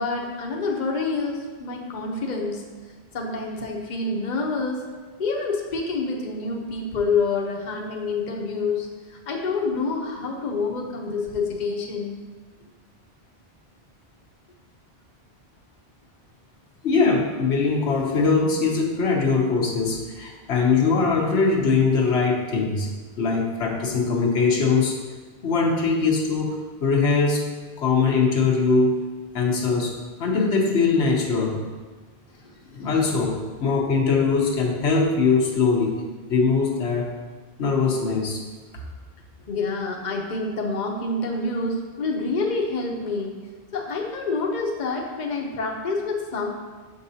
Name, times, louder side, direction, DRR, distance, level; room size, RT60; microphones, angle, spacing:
voice 1, 0.0-2.6 3.1-4.8 5.2-8.9 9.3-12.2 39.5-43.4 43.7-46.5, left 3 dB, 45° left, -1 dB, 0.9 m, -27 dB
voice 2, 16.8-22.9 23.2-24.9 25.4-27.4 27.8-29.0 29.3-29.9 30.2-31.6 32.7-36.0 36.3-37.1 37.6-38.4, left 4 dB, 85° left, -1 dB, 1.2 m, -21 dB
7.0 x 5.3 x 2.7 m, 1.4 s
omnidirectional pair, 1.1 m